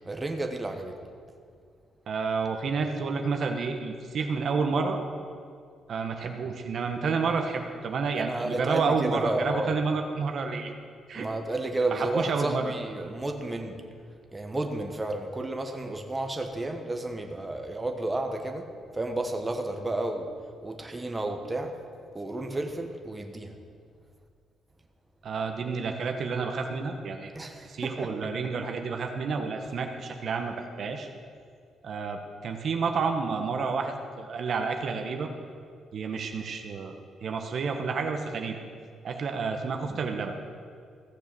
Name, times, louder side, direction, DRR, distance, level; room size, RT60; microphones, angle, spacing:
voice 1, 0.1-0.9 8.1-9.8 11.1-13.8 14.3-18.7 18.9-20.3 20.6-21.8 22.1-23.5 27.3-28.1, right 2 dB, 15° right, 4 dB, 1.3 m, -32 dB
voice 2, 2.1-5.0 5.9-10.7 11.1-11.3 11.9-13.1 25.2-27.3 27.6-31.1 31.8-35.3 35.9-37.0 37.2-38.6 39.0-40.4, right 5 dB, 60° right, 4 dB, 1.2 m, -30 dB
15.5 x 6.9 x 6.9 m, 2.2 s
cardioid pair, 90°, 0 cm